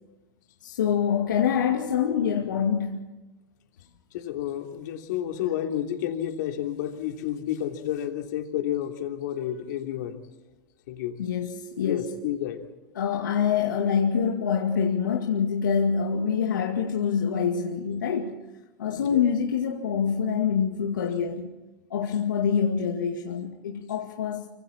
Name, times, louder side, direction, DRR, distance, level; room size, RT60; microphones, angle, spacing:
voice 1, 0.6-3.0 11.2-12.2 12.9-18.5 18.8-21.6 21.9-24.5, left 7 dB, 85° left, 2.2 m, -25 dB
voice 2, 4.1-10.2 10.9-11.2 11.8-12.6 18.8-19.2, left 11 dB, 70° left, 3.2 m, -31 dB
25.5 x 25.5 x 4.4 m
hypercardioid pair, 105°, 10 cm